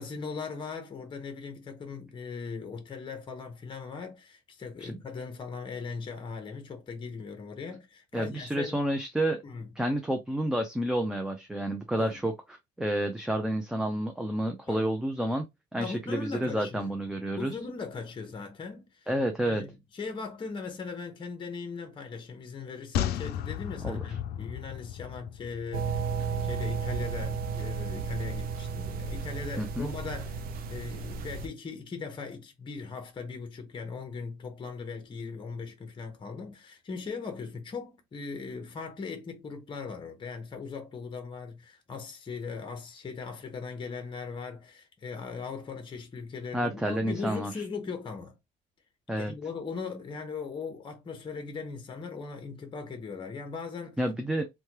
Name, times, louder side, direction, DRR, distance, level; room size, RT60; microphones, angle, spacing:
voice 1, 0.0-8.8 9.4-9.7 12.0-12.2 14.7-14.8 15.8-16.9 17.4-19.1 19.4-30.4 30.7-48.3 49.2-54.0, left 5 dB, 30° left, 0.8 m, -39 dB
voice 2, 8.1-9.4 9.8-12.3 12.8-15.4 15.7-17.5 19.1-19.6 23.8-24.0 29.6-29.9 46.5-47.6 49.1-49.3 54.0-54.4, right 1 dB, 5° right, 0.4 m, -29 dB
sound 1, 22.9-26.4 26.7-26.8, left 10 dB, 70° left, 0.4 m, -34 dB
sound 2, 25.7-31.5, right 5 dB, 60° right, 0.5 m, -33 dB
3.1 x 2.2 x 2.8 m
cardioid pair, 110°, 17 cm